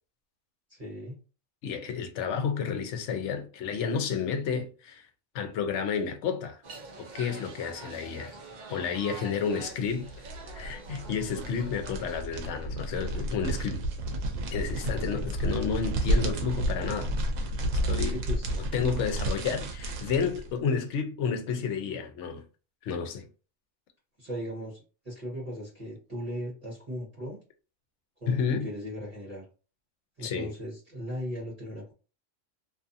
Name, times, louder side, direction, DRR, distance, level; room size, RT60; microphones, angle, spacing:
voice 1, 0.7-1.2 18.1-18.4 24.2-27.4 28.2-29.4 30.2-31.9, equal, 35° right, 1.0 m, -38 dB
voice 2, 1.6-5.1 5.3-6.6 7.0-8.4 8.7-10.1 10.5-13.8 14.5-17.1 17.8-18.2 18.5-22.4 22.8-23.3 28.3-28.7 30.2-30.5, left 6 dB, 70° left, 0.9 m, -31 dB
sound 1, 6.6-12.2, right 3 dB, 50° right, 0.6 m, -45 dB
sound 2, 9.8-20.5, right 1 dB, 90° right, 1.0 m, -31 dB
2.6 x 2.5 x 2.5 m
omnidirectional pair, 1.3 m